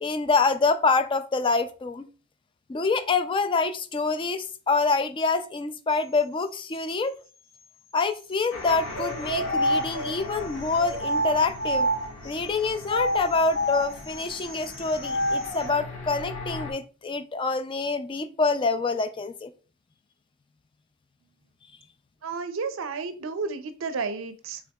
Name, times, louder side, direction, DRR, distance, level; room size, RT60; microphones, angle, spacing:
voice 1, 0.0-2.1 2.7-7.1 7.9-11.9 12.2-19.5, left 4 dB, 25° left, 0.3 m, -26 dB
sound 1, 8.5-16.7, left 3 dB, 90° left, 1.5 m, -40 dB
sound 2, 8.9-12.3 12.8-15.7, equal, 65° left, 1.4 m, -28 dB
voice 2, 22.2-24.6, right 4 dB, 65° right, 0.5 m, -32 dB
6.3 x 3.6 x 2.3 m
head